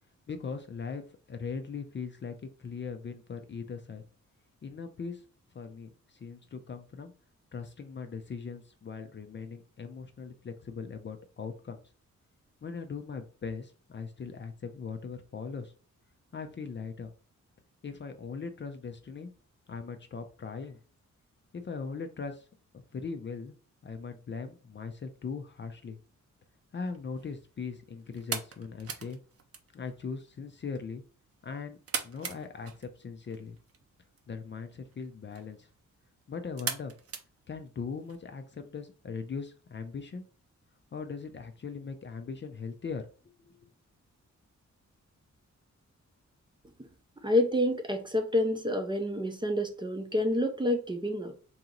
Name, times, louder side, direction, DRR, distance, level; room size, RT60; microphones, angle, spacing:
voice 1, 0.3-1.0 1.3-2.3 2.6-4.0 4.6-5.2 5.5-7.1 7.5-11.8 12.6-15.7 16.3-17.1 17.8-19.3 19.7-20.8 21.5-22.4 22.9-23.5 23.8-26.0 26.7-29.2 29.7-31.0 31.4-31.8 32.0-33.6 34.3-35.7 36.3-36.9 37.5-40.3 40.9-43.1 43.4-43.6, left 5 dB, 40° left, 0.5 m, -39 dB
sound 1, 26.8-38.1, right 6 dB, 50° right, 0.7 m, -43 dB
voice 2, 47.2-51.3, left 1 dB, 15° right, 0.6 m, -28 dB
3.9 x 2.9 x 3.8 m
wide cardioid pair, 135°, 30 cm